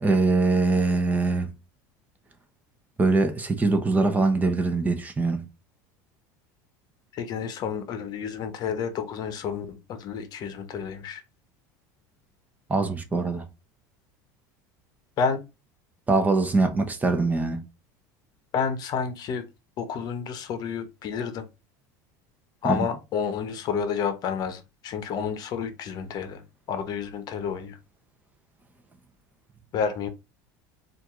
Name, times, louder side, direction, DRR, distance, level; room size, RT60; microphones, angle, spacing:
voice 1, 0.0-1.5 3.0-5.5 12.7-13.5 16.1-17.7 22.6-22.9, right 3 dB, 20° right, 0.8 m, -23 dB
voice 2, 7.1-11.2 15.2-15.4 18.5-19.5 19.8-21.4 22.6-26.4 26.7-27.8 29.7-30.1, left 6 dB, 45° left, 0.8 m, -30 dB
4.5 x 2.6 x 3.6 m
supercardioid pair, 110°, 9 cm